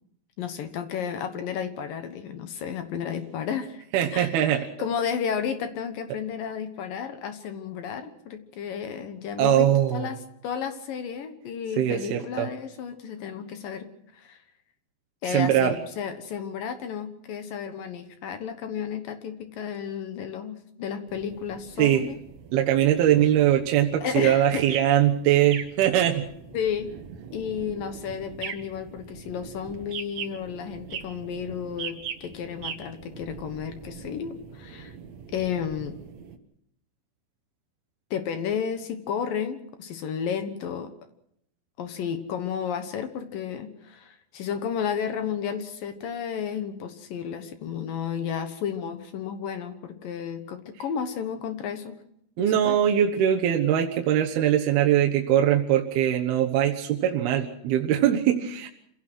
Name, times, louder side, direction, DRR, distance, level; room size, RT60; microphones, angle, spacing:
voice 1, 0.4-3.8 4.1-14.4 15.2-22.2 24.0-24.6 26.5-26.9 27.3-32.0 32.2-35.0 35.3-36.0 38.1-40.9 41.8-52.0 52.4-52.8, left 7 dB, 70° left, 8 dB, 2.1 m, -32 dB
voice 2, 3.9-4.7 9.4-10.1 11.8-12.5 15.3-15.8 21.8-22.0 22.5-26.3 52.4-58.7, right 11 dB, 70° right, 2 dB, 2.6 m, -22 dB
sound 1, 21.1-36.4, right 7 dB, 90° right, 1.5 m, -41 dB
27.5 x 16.5 x 6.2 m, 0.74 s
omnidirectional pair, 5.8 m